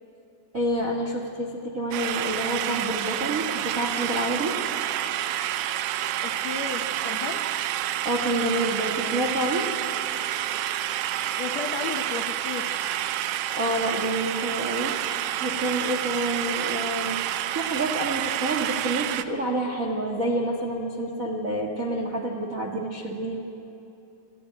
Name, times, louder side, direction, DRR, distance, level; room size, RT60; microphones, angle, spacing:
voice 1, 0.5-4.6 8.0-9.7 13.5-14.9 15.4-23.4, right 1 dB, 60° right, 1 dB, 0.8 m, -28 dB
sound 1, 1.9-19.2, right 12 dB, 80° right, 2.3 m, -29 dB
voice 2, 6.2-7.5 11.4-12.8, left 6 dB, 90° left, 5 dB, 1.5 m, -34 dB
27.0 x 15.0 x 9.3 m, 2.8 s
omnidirectional pair, 4.4 m